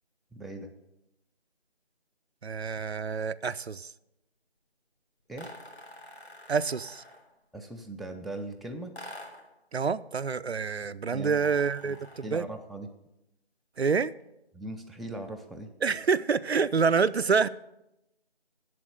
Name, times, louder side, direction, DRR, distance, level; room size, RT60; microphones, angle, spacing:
voice 1, 0.3-0.7 5.3-5.5 7.5-9.0 11.1-11.5 11.8-12.0 12.2-12.9 14.5-15.7, right 2 dB, ahead, 3 dB, 0.4 m, -39 dB
voice 2, 2.4-3.9 6.5-7.0 9.7-12.5 13.8-14.1 15.8-17.5, right 5 dB, 75° right, 14 dB, 0.5 m, -27 dB
sound 1, 5.4-7.3 8.9-9.5 11.3-12.4, left 1 dB, 90° left, 3.1 m, -47 dB
7.8 x 7.6 x 8.0 m, 0.89 s
figure-of-eight pair, 170°, 32 cm